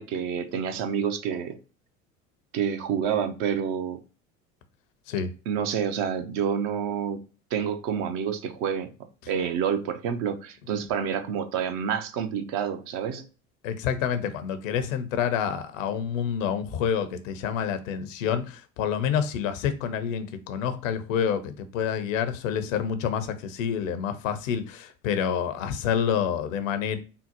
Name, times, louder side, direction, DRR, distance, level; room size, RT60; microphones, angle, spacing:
voice 1, 0.0-1.6 2.5-4.0 5.5-7.2 7.5-8.9 9.3-13.3, right 8 dB, 55° right, 0.6 m, -28 dB
voice 2, 13.6-27.0, left 8 dB, 70° left, 0.6 m, -28 dB
3.7 x 2.0 x 2.8 m
hypercardioid pair, 75°, 40 cm